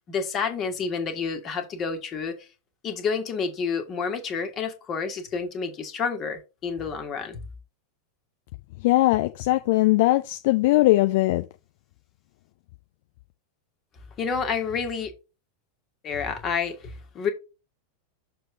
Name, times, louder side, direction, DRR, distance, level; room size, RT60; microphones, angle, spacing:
voice 1, 0.1-2.4 2.8-7.4 14.2-15.1 16.0-17.3, left 5 dB, 30° left, 1.6 m, -29 dB
voice 2, 8.8-11.4, left 18 dB, 50° left, 0.4 m, -20 dB
6.6 x 3.4 x 5.9 m
figure-of-eight pair, 90°, 0 cm